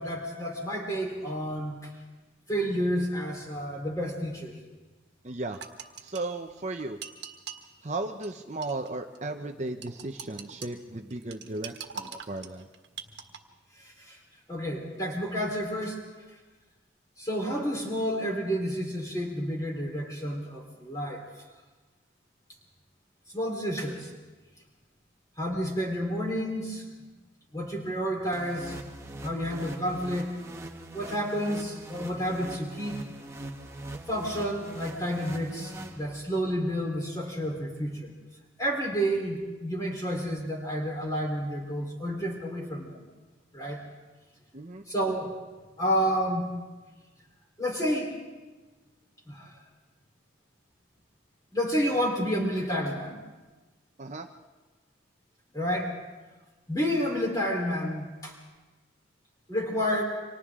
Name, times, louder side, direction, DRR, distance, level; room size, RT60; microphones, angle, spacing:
voice 1, 0.0-1.9 2.5-4.6 13.8-14.2 14.5-16.0 17.2-21.2 23.3-24.1 25.4-26.9 27.5-28.8 29.2-30.3 30.9-33.0 34.1-38.1 38.6-43.0 43.5-43.8 44.9-45.3 45.8-46.5 47.6-48.2 49.3-49.5 51.5-53.2 55.5-55.9 56.7-58.4 59.5-60.0, equal, 15° left, 0 dB, 3.8 m, -30 dB
voice 2, 5.2-5.6 6.0-7.0 7.8-12.7 44.5-44.8 54.0-54.3, right 2 dB, 35° right, 4 dB, 0.7 m, -35 dB
sound 1, 5.5-7.7 8.2-8.3 8.6-8.9 9.1-9.2 9.8-10.7 11.1-13.4, right 7 dB, 55° right, 1.6 m, -42 dB
sound 2, 28.3-36.5, right 1 dB, 15° right, 1.2 m, -42 dB
30.0 x 25.5 x 3.7 m, 1.2 s
head